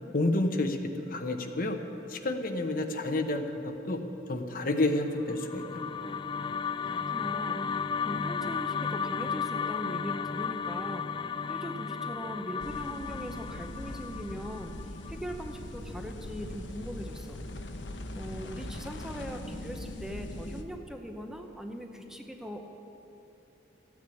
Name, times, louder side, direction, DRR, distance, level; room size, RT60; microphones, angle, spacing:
voice 1, 0.1-0.8 1.1-1.8 2.1-4.0 4.3-5.9, left 2 dB, 50° left, 6 dB, 1.0 m, -29 dB
sound 1, 5.2-15.5, left 6 dB, 25° left, 0.4 m, -34 dB
voice 2, 6.8-7.6 8.0-11.1 11.5-14.8 15.1-17.4 18.1-22.6, equal, 5° right, 3 dB, 0.8 m, -40 dB
sound 2, 12.6-20.6, left 1 dB, 90° left, 1.0 m, -41 dB
14.0 x 9.6 x 8.5 m, 3.0 s
head